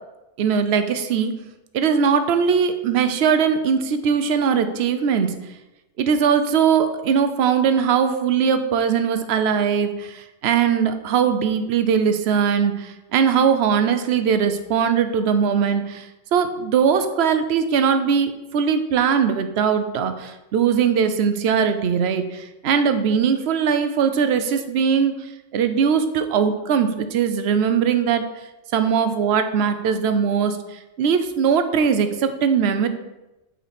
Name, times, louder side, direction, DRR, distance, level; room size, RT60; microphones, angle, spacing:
voice 1, 0.4-1.3 1.7-5.3 6.0-28.3 28.7-32.9, right 7 dB, 60° right, 9 dB, 0.8 m, -20 dB
8.4 x 4.4 x 4.2 m, 0.99 s
omnidirectional pair, 1.4 m